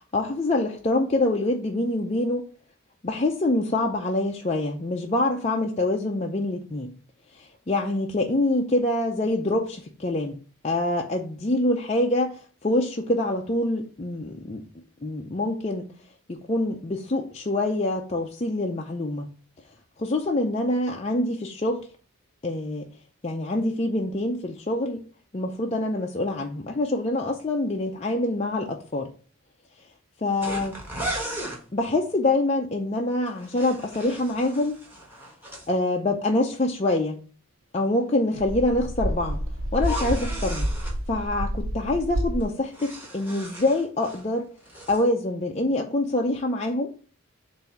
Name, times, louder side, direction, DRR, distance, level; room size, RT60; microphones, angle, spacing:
voice 1, 0.1-2.4 3.0-6.9 7.3-10.4 10.6-14.6 15.0-15.9 16.3-19.3 20.0-21.9 22.4-22.9 23.2-25.0 25.3-29.1 30.2-30.8 31.7-34.8 35.7-37.2 37.7-39.4 39.7-40.7 41.1-44.5 44.9-46.9, left 2 dB, 30° left, 0.5 m, -25 dB
sound 1, 30.4-31.6 33.3-35.7 39.7-41.0 42.4-44.3 44.6-45.0, equal, 10° right, 1.5 m, -36 dB
sound 2, 38.4-42.4, equal, 75° right, 0.9 m, -29 dB
7.1 x 2.7 x 5.6 m
head